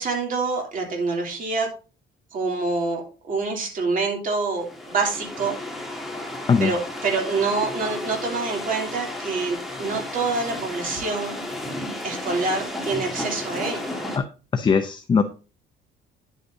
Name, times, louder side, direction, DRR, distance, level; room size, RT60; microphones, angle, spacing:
voice 1, 0.0-1.7 2.3-5.6 6.6-11.4 12.0-14.0, right 4 dB, 45° right, 1 dB, 2.8 m, -26 dB
sound 1, 4.5-14.2, left 1 dB, ahead, 1.6 m, -33 dB
voice 2, 14.5-15.2, left 5 dB, 20° left, 8 dB, 0.5 m, -20 dB
10.0 x 8.2 x 2.6 m, 0.33 s
cardioid pair, 160°, 21 cm